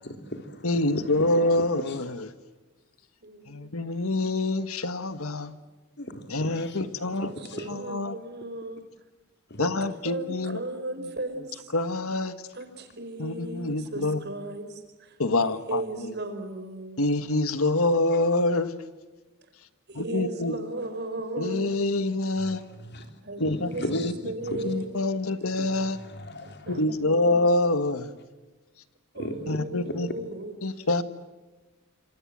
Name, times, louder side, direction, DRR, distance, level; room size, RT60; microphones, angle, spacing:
voice 1, 0.0-0.7 0.9-1.1 1.4-2.0 6.0-6.8 7.4-7.7 9.5-9.6 22.8-23.2 23.5-24.1 24.5-24.6 25.6-26.7 29.2-29.4 29.9-30.0, left 1 dB, 50° left, 6 dB, 3.5 m, -37 dB
voice 2, 0.6-2.3 3.5-5.5 6.3-7.3 7.7-8.1 9.6-10.6 11.0-11.1 11.7-12.5 13.2-14.2 15.2-16.1 17.0-18.8 19.6-19.7 19.9-20.5 21.4-22.6 23.4-24.1 24.6-26.0 26.7-28.1 29.5-30.1 30.6-31.0, left 2 dB, 80° left, 11 dB, 1.6 m, -26 dB
voice 3, 3.2-3.7 7.0-8.8 9.6-9.7 10.0-11.7 12.5-15.2 15.7-17.0 19.9-21.7 23.2-24.9 26.4-27.4 29.1-30.5, right 2 dB, 50° right, 8 dB, 4.7 m, -36 dB
28.0 x 26.5 x 7.6 m, 1.2 s
head